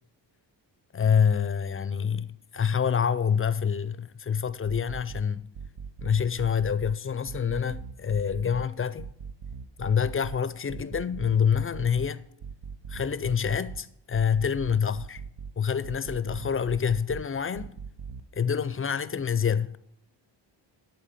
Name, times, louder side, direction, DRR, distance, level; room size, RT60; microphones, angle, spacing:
voice 1, 0.9-5.5 6.0-9.1 9.8-12.3 12.9-15.2 15.6-17.8 18.3-19.8, left 7 dB, 30° left, 0.4 m, -27 dB
sound 1, 4.5-5.2 5.5-6.9 7.3-8.7 9.0-10.4 10.7-12.1 12.4-13.8 14.1-15.5 15.8-17.2 17.5-18.2, right 6 dB, 90° right, 0.8 m, -40 dB
10.5 x 4.4 x 6.8 m
cardioid pair, 95°, 46 cm